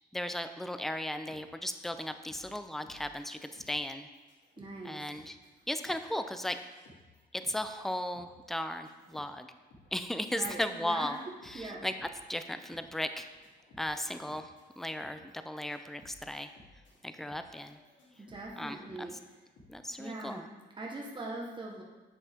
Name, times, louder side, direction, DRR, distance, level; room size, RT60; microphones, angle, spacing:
voice 1, 0.1-4.1 4.8-5.4 5.7-6.6 7.3-9.5 9.9-11.2 11.5-11.9 12.3-13.3 13.8-16.5 17.0-17.8 18.6-19.1 19.7-20.5, left 1 dB, ahead, 9 dB, 0.5 m, -36 dB
sound 1, 1.3-20.4, left 1 dB, 85° left, 2.4 m, -60 dB
voice 2, 4.6-5.1 10.3-11.1 11.5-11.8 18.2-19.1 20.0-21.8, right 2 dB, 25° right, -2 dB, 1.4 m, -42 dB
8.3 x 6.5 x 3.6 m, 1.2 s
cardioid pair, 90°, 20 cm